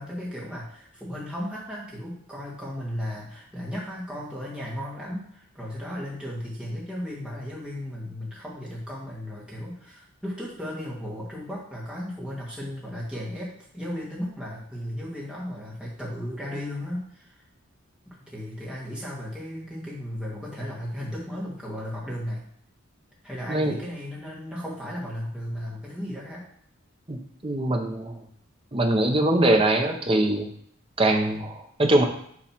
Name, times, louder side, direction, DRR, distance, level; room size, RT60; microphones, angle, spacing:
voice 1, 0.0-17.4 18.0-22.4 23.2-26.4, equal, 5° right, -6 dB, 1.6 m, -35 dB
voice 2, 27.1-28.2 28.7-30.5 31.0-32.0, right 1 dB, 25° right, 3 dB, 0.7 m, -22 dB
7.1 x 3.2 x 5.8 m, 0.66 s
head